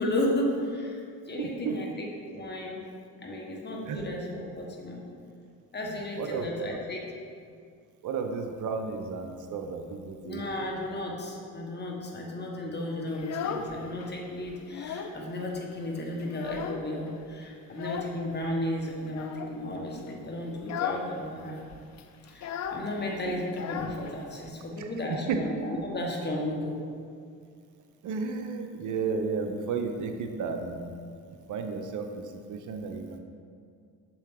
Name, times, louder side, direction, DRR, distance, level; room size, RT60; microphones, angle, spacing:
voice 1, 0.0-2.8 3.2-5.0 5.7-7.0 10.2-21.6 22.3-26.8, left 1 dB, 30° left, -1 dB, 1.2 m, -34 dB
voice 2, 1.4-1.8 3.9-4.0 5.8-6.8 8.0-10.4 23.3-23.4 24.8-25.4 28.0-30.9 31.5-33.2, right 5 dB, 55° right, 5 dB, 0.6 m, -33 dB
Child speech kid speaking, 13.1-14.1 14.5-15.2 15.5-15.6 16.0-17.1 17.7-18.2 19.1-19.6 20.0-20.2 20.6-21.1 21.4-21.5 21.7-24.5, left 7 dB, 50° left, 0.5 m, -36 dB
6.5 x 4.5 x 3.6 m, 2.3 s
supercardioid pair, 85°, 36 cm